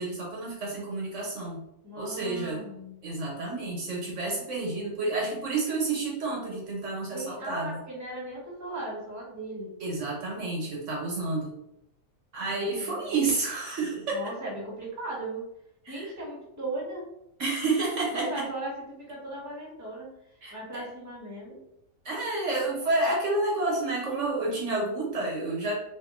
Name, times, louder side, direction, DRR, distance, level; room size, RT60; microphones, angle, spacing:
voice 1, 0.0-1.6 2.0-2.6 3.0-7.8 9.8-11.6 12.3-14.2 15.9-16.1 17.4-18.4 20.4-20.8 22.0-25.7, right 2 dB, 65° right, -2 dB, 1.2 m, -30 dB
voice 2, 1.8-2.9 7.1-9.8 12.8-13.2 14.1-15.5 15.9-17.1 18.1-20.1 20.5-21.6, right 2 dB, 15° right, -4 dB, 1.0 m, -37 dB
2.8 x 2.7 x 3.6 m, 0.78 s
omnidirectional pair, 1.4 m